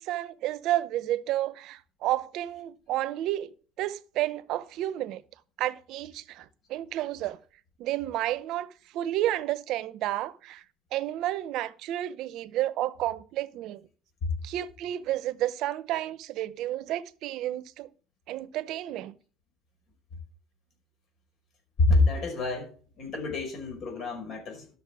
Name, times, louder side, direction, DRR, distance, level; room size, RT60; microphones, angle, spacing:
voice 1, 0.0-5.2 5.6-7.4 7.8-8.7 8.9-10.6 10.9-13.9 14.4-17.9 18.3-19.1, right 14 dB, 70° right, 0.7 m, -31 dB
voice 2, 21.8-22.7 23.0-24.7, left 2 dB, 60° left, 5.3 m, -26 dB
12.5 x 6.5 x 4.8 m
supercardioid pair, 90°, 0 cm